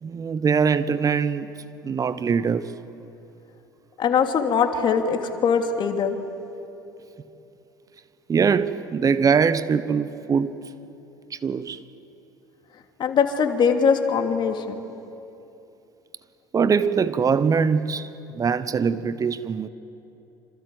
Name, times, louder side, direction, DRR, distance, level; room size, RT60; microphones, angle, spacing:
voice 1, 0.0-1.5 1.8-2.7 8.3-10.6 11.3-11.8 16.5-19.7, right 6 dB, 30° right, 1.0 m, -22 dB
voice 2, 4.0-6.2 13.0-14.8, left 6 dB, 45° left, 2.9 m, -21 dB
27.5 x 26.5 x 8.0 m
hypercardioid pair, 65°, 11 cm